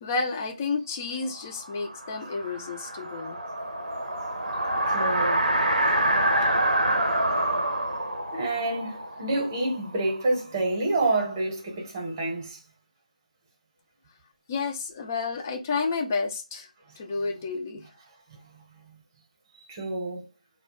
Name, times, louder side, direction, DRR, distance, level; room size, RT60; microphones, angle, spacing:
voice 1, 0.0-3.4 14.5-16.7 17.0-17.8, left 4 dB, 20° left, 0.3 m, -30 dB
sound 1, 1.5-10.2, right 1 dB, 80° right, 0.6 m, -26 dB
voice 2, 4.9-5.5 8.3-12.6 19.7-20.2, right 2 dB, 20° right, 0.8 m, -28 dB
2.2 x 2.1 x 2.9 m
figure-of-eight pair, 160°, 4 cm